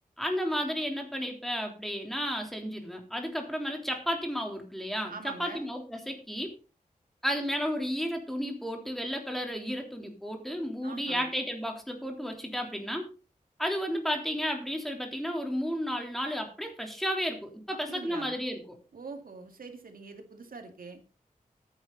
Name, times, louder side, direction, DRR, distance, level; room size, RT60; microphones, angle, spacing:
voice 1, 0.2-6.5 7.2-13.1 13.6-18.8, equal, ahead, 3 dB, 3.5 m, -33 dB
voice 2, 5.1-5.7 10.8-11.3 17.9-18.4 18.9-21.0, right 4 dB, 85° right, 5 dB, 2.2 m, -43 dB
13.5 x 9.8 x 4.0 m, 0.34 s
wide cardioid pair, 80°, 14 cm